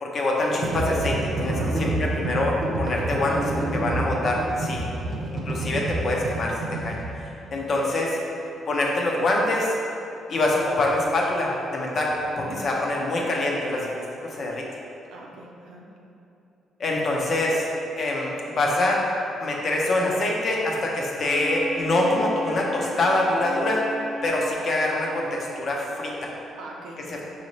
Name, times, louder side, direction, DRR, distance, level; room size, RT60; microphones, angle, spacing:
voice 1, 0.0-4.9 5.5-7.0 7.5-8.2 8.7-9.8 10.3-14.7 16.8-17.7 18.0-19.0 19.4-23.8 24.2-26.3 27.1-27.2, left 2 dB, 50° left, -2 dB, 0.7 m, -25 dB
sound 1, 0.5-7.1, right 2 dB, 50° right, 0.8 m, -28 dB
voice 2, 1.6-2.2 2.9-3.8 5.1-5.4 7.4-7.6 12.4-12.6 15.1-15.8 26.6-27.2, right 2 dB, 85° right, -2 dB, 0.6 m, -42 dB
Wind instrument woodwind instrument, 21.2-25.6, right 1 dB, 15° right, 0.4 m, -36 dB
5.4 x 2.8 x 3.1 m, 2.8 s
cardioid pair, 90°, 0 cm